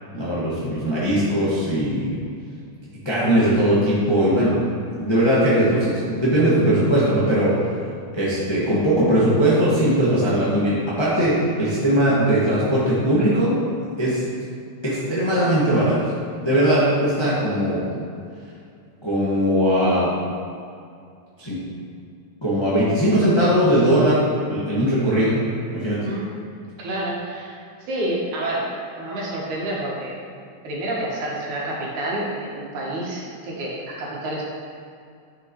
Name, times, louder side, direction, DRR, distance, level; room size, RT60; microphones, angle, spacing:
voice 1, 0.1-2.2 3.0-4.6 5.0-7.5 8.1-13.6 14.0-14.2 14.8-16.0 16.4-17.8 19.0-20.1 21.4-21.6 22.4-24.2 24.5-25.4 25.7-26.0, right 1 dB, 20° left, -9 dB, 0.7 m, -19 dB
voice 2, 26.8-27.6 27.9-30.2 30.6-34.4, right 1 dB, 85° right, -4 dB, 2.9 m, -28 dB
9.8 x 6.6 x 3.1 m, 2.4 s
omnidirectional pair, 3.4 m